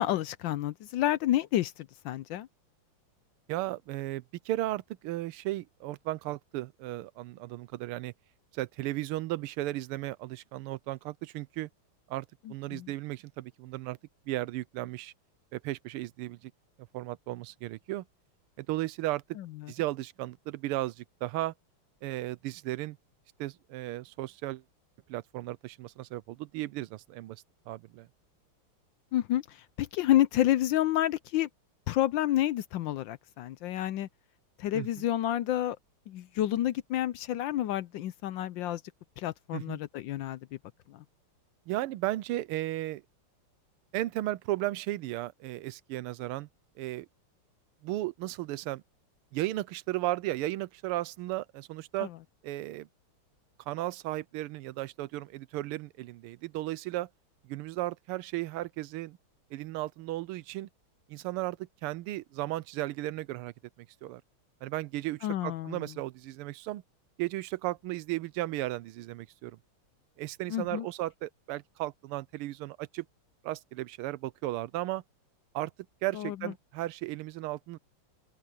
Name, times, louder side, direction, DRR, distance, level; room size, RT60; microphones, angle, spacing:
voice 1, 0.0-2.5 12.5-12.9 19.4-19.7 29.1-31.5 31.9-34.1 34.6-35.8 36.1-38.8 39.2-40.4 40.9-41.0 52.0-52.2 65.2-65.9 70.5-70.9 76.1-76.5, left 13 dB, 75° left, 1.2 m, -29 dB
voice 2, 3.5-8.1 8.5-11.7 12.1-14.0 14.3-15.1 15.5-16.5 16.9-18.0 18.6-19.2 19.7-21.5 22.0-23.0 23.4-24.6 25.1-28.1 34.7-35.0 39.5-39.8 41.7-43.0 43.9-46.5 46.8-47.1 47.8-48.8 49.3-52.1 52.4-52.9 53.7-57.1 57.5-59.2 59.5-60.7 61.1-64.2 64.6-66.8 67.2-69.6 70.2-73.0 73.4-75.0 75.5-75.7 76.0-77.8, right 16 dB, 90° right, 1.6 m, -35 dB
open air
omnidirectional pair, 2.4 m